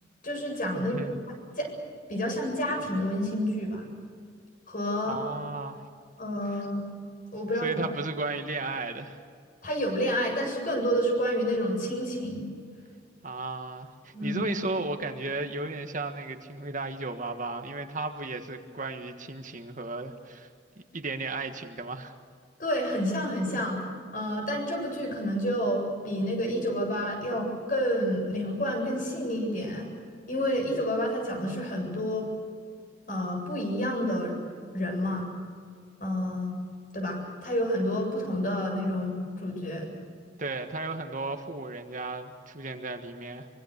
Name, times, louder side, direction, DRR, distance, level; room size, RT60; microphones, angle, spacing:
voice 1, 0.2-1.1 1.6-1.8 2.1-3.9 4.7-5.2 6.2-6.8 7.3-7.8 9.6-12.5 14.1-14.4 22.6-23.9 24.1-29.9 30.3-32.3 33.1-34.4 34.7-35.3 36.0-36.6 36.9-39.9, equal, 45° left, 2 dB, 7.9 m, -29 dB
voice 2, 0.7-1.1 5.0-5.8 6.5-6.6 7.6-9.2 13.2-20.5 20.9-22.1 40.4-43.5, right 3 dB, 45° right, 5 dB, 1.6 m, -34 dB
25.0 x 24.0 x 6.7 m, 2.1 s
head